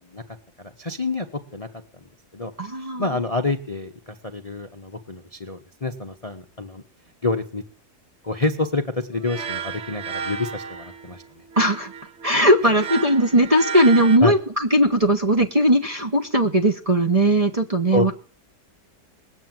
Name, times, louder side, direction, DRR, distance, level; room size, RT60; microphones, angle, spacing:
voice 1, 0.6-1.3 1.5-1.7 2.3-2.5 3.0-3.9 4.2-6.8 7.2-7.6 8.2-11.2 14.2-14.3 17.9-18.1, left 2 dB, 25° left, 6 dB, 0.9 m, -27 dB
voice 2, 2.6-3.1 11.6-11.9 12.2-18.1, right 1 dB, 25° right, 1 dB, 1.1 m, -18 dB
sound 1, 9.1-14.2, right 6 dB, 50° right, 1.1 m, -33 dB
20.0 x 8.5 x 7.7 m, 0.44 s
omnidirectional pair, 1.8 m